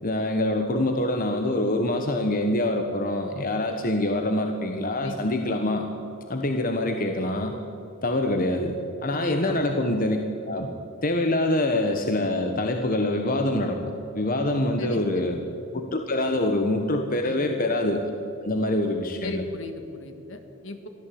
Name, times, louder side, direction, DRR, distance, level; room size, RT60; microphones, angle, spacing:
voice 1, 0.0-5.9 6.3-7.5 8.0-8.8 9.0-10.2 10.5-10.7 11.0-15.4 15.7-18.0 18.4-19.4, left 1 dB, 45° left, 4 dB, 1.4 m, -25 dB
voice 2, 9.1-9.6 14.8-15.3 17.2-17.5 19.2-20.9, left 2 dB, 65° left, 7 dB, 2.3 m, -37 dB
23.0 x 15.0 x 8.7 m, 2.8 s
head